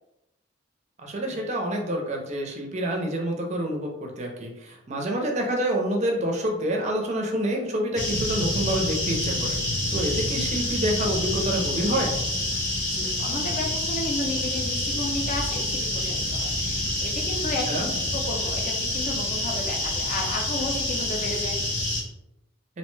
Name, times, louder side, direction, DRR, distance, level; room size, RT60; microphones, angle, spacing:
voice 1, 1.0-12.1 17.7-17.9, right 1 dB, 35° right, 2 dB, 0.5 m, -27 dB
sound 1, 8.0-22.0, left 1 dB, 85° left, 1.0 m, -27 dB
voice 2, 12.9-21.6, left 2 dB, 40° left, 0 dB, 0.5 m, -33 dB
2.6 x 2.1 x 3.1 m, 0.88 s
head